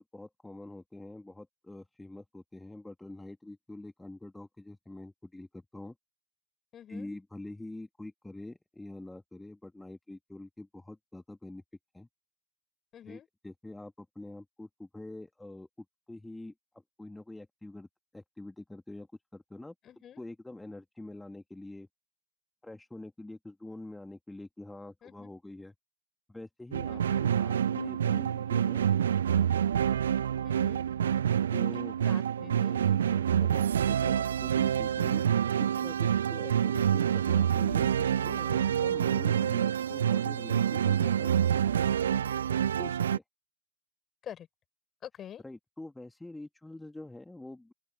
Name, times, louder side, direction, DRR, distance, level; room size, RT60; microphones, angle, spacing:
voice 1, 0.0-5.9 6.9-11.6 11.9-12.1 13.0-15.7 16.1-16.5 17.0-17.9 18.1-19.1 19.3-19.7 20.2-21.9 22.6-25.7 26.3-28.9 31.5-32.0 33.2-35.3 35.6-41.3 42.7-43.2 45.4-47.7, left 2 dB, 5° left, 2.7 m, -45 dB
voice 2, 6.7-7.1 12.9-13.3 19.8-20.2 25.0-25.3 26.9-27.2 30.4-30.9 32.0-33.2 44.2-44.5 45.0-45.4, left 10 dB, 25° left, 5.3 m, -47 dB
sound 1, 26.7-43.2, right 9 dB, 65° right, 0.3 m, -27 dB
open air
figure-of-eight pair, 90°, 0 cm